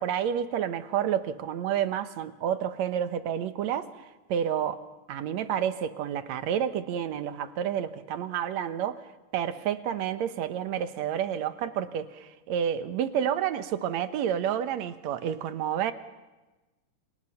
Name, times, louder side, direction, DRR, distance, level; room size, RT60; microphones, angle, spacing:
voice 1, 0.0-3.9 4.3-4.8 5.1-9.0 9.3-15.9, right 9 dB, 75° right, 10 dB, 2.3 m, -29 dB
29.0 x 26.5 x 5.8 m, 1.1 s
omnidirectional pair, 3.3 m